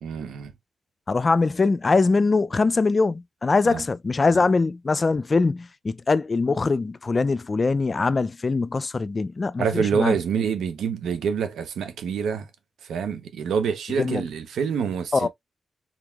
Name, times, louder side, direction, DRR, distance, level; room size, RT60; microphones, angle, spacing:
voice 1, 0.0-0.5 3.6-3.8 4.3-4.4 9.6-12.5 12.9-15.3, right 6 dB, 85° right, 0.5 m, -26 dB
voice 2, 1.1-10.2 14.0-14.2 15.1-15.3, left 3 dB, 45° left, 0.3 m, -22 dB
3.6 x 3.5 x 2.3 m
supercardioid pair, 40°, 0 cm